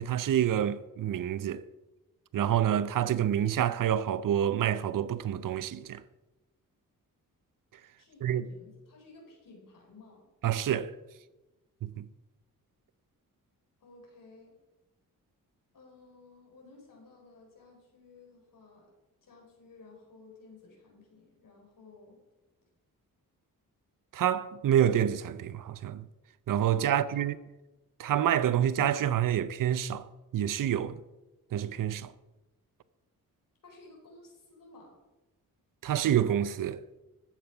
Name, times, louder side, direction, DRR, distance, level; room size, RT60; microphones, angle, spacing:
voice 1, 0.0-1.6 2.3-6.0 8.2-8.4 10.4-10.9 11.8-12.0 24.1-26.1 26.5-27.4 28.0-30.1 30.3-31.0 31.5-32.1 35.8-36.8, right 10 dB, 65° right, 0.7 m, -27 dB
voice 2, 8.0-10.3 13.8-14.5 15.7-18.9 19.2-22.2 26.9-27.3 33.6-34.9, left 3 dB, 65° left, 4.5 m, -55 dB
14.5 x 7.2 x 5.9 m
cardioid pair, 70°, 35 cm